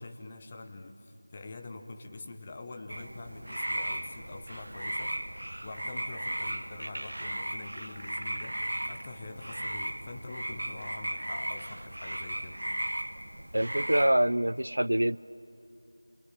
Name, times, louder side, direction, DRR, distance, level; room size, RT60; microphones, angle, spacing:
voice 1, 0.0-5.2 5.6-12.6, left 2 dB, 10° left, 6 dB, 0.7 m, -45 dB
sound 1, 2.9-14.1, right 1 dB, 55° right, 1.2 m, -36 dB
voice 2, 13.5-15.2, right 1 dB, 75° right, 20 dB, 0.5 m, -25 dB
28.0 x 21.5 x 9.2 m, 2.6 s
figure-of-eight pair, 180°, 0 cm